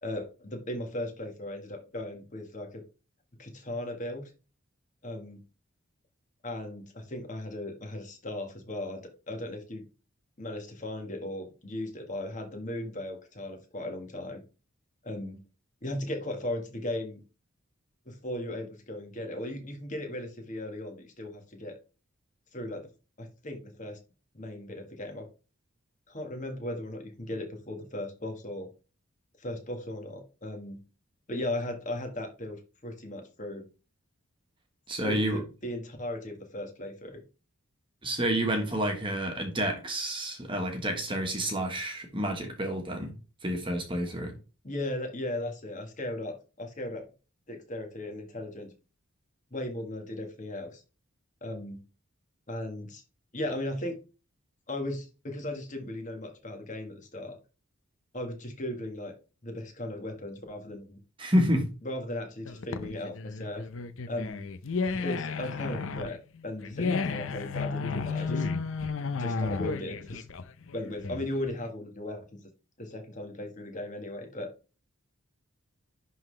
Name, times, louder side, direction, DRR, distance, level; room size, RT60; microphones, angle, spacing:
voice 1, 0.0-2.8 3.4-4.3 5.0-5.4 6.4-9.8 10.4-14.4 15.0-15.4 15.8-17.2 18.0-21.8 22.5-22.9 23.2-24.0 24.3-25.2 26.1-28.7 29.4-30.8 31.3-33.6 35.0-37.2 44.6-47.0 47.5-48.7 49.5-50.8 51.4-51.8 52.5-53.0 53.3-54.0 54.7-57.3 58.1-59.1 59.4-61.0 61.8-63.7 64.1-64.4 65.0-68.5 69.2-70.2 70.7-72.4 72.8-74.5, left 1 dB, 35° left, 4 dB, 1.6 m, -37 dB
voice 2, 34.9-35.4 38.0-43.1 43.4-44.3 61.2-61.7, equal, 25° right, 4 dB, 1.4 m, -29 dB
sound 1, 62.5-71.5, left 4 dB, 70° left, 0.6 m, -33 dB
10.5 x 3.8 x 3.3 m, 0.33 s
head